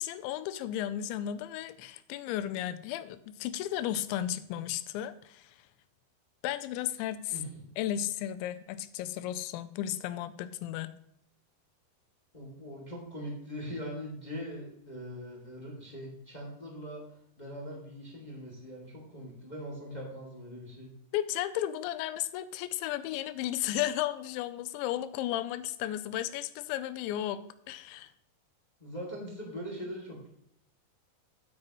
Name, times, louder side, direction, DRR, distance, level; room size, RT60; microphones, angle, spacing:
voice 1, 0.0-5.6 6.4-7.4 7.8-10.9 21.1-28.1, left 12 dB, 85° left, 13 dB, 2.8 m, -34 dB
voice 2, 7.3-7.6 12.3-17.0 17.4-20.9 28.8-30.3, equal, 15° left, -2 dB, 1.5 m, -41 dB
9.7 x 8.8 x 3.1 m, 0.72 s
omnidirectional pair, 5.3 m